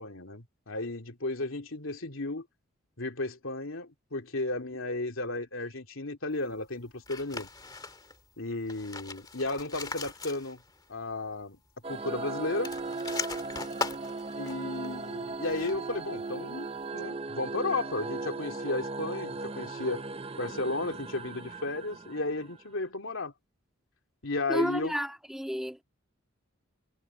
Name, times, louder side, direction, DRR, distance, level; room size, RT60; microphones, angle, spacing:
voice 1, 0.0-2.4 3.0-7.5 8.4-10.6 10.9-11.6 11.9-12.7 14.4-16.7 16.9-20.0 20.4-23.3 24.2-24.9, left 2 dB, 75° left, 2.8 m, -34 dB
sound 1, 7.0-8.2 8.6-10.8 11.1-11.2 12.4-16.0, left 4 dB, 20° left, 2.2 m, -40 dB
sound 2, 11.8-22.8, right 3 dB, 25° right, 0.7 m, -37 dB
voice 2, 24.5-25.8, equal, ahead, 2.2 m, -31 dB
head